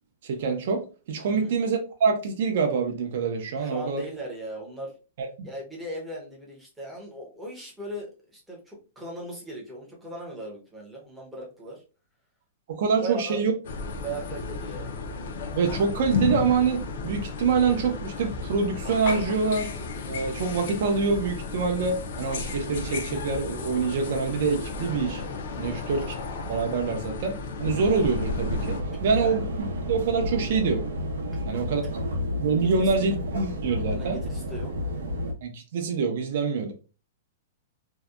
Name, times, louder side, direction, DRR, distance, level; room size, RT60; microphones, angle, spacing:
voice 1, 0.2-0.8 1.1-4.0 5.4-5.5 12.7-13.5 15.6-19.7 20.1-25.2 25.6-26.1 26.5-29.4 29.9-30.8 31.5-31.9 32.4-34.2 35.4-36.7, right 5 dB, 45° right, 0.4 m, -25 dB
voice 2, 3.6-5.0 5.4-11.8 12.8-13.5 14.0-14.9 25.6-25.9 29.1-29.5 31.5-31.6 32.7-32.9 33.9-34.7, right 1 dB, 5° right, 0.6 m, -38 dB
sound 1, 13.6-28.8, left 4 dB, 50° left, 0.4 m, -33 dB
sound 2, 27.6-35.3, left 1 dB, 90° right, 0.6 m, -31 dB
2.6 x 2.1 x 2.3 m
supercardioid pair, 180°, 0 cm